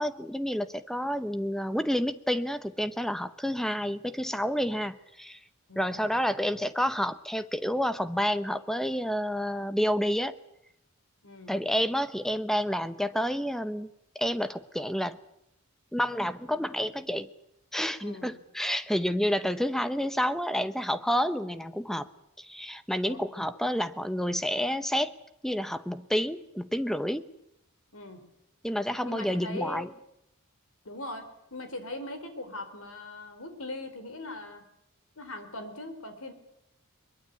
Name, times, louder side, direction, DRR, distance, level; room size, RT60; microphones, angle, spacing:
voice 1, 0.0-5.4 5.8-10.4 11.5-13.9 14.1-15.2 15.9-17.3 17.7-22.1 22.4-25.1 25.4-27.3 28.6-29.9, equal, ahead, 12 dB, 0.9 m, -29 dB
voice 2, 11.2-11.5 18.0-18.3 23.0-23.2 27.9-28.3 29.0-29.9 30.9-31.2 31.5-34.7 35.2-36.3, left 2 dB, 80° left, 8 dB, 4.1 m, -40 dB
22.0 x 22.0 x 8.4 m, 0.79 s
head